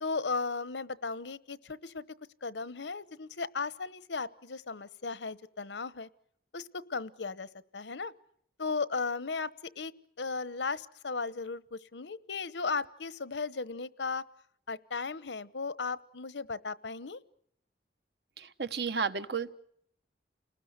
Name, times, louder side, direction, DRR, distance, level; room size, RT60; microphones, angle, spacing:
voice 1, 0.0-2.0 2.4-6.1 6.5-8.1 8.6-9.5 9.8-9.9 10.2-14.2 14.7-17.2, left 4 dB, 85° left, 16 dB, 1.0 m, -36 dB
voice 2, 18.6-19.5, right 5 dB, 65° right, 11 dB, 1.2 m, -31 dB
29.5 x 19.5 x 8.1 m, 0.68 s
head